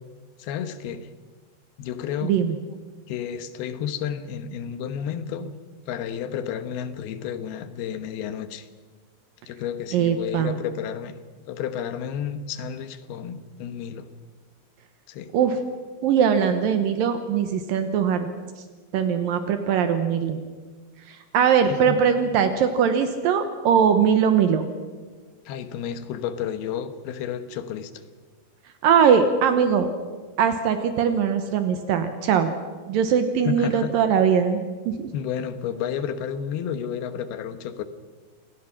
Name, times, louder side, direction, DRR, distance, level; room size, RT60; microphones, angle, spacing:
voice 1, 0.4-1.1 1.8-2.4 3.1-5.6 5.9-8.7 9.5-11.1 11.5-14.1 15.1-15.3 21.7-22.0 25.5-27.9 33.5-33.9 35.1-37.8, left 8 dB, 90° left, 11 dB, 3.1 m, -31 dB
voice 2, 2.2-2.6 9.9-10.6 15.3-15.6 16.0-18.3 18.9-20.4 21.1-24.7 28.8-29.9 30.4-32.5 32.9-34.6 34.9-35.1, right 7 dB, 75° right, 8 dB, 2.6 m, -21 dB
27.5 x 17.5 x 6.0 m, 1.5 s
omnidirectional pair, 4.4 m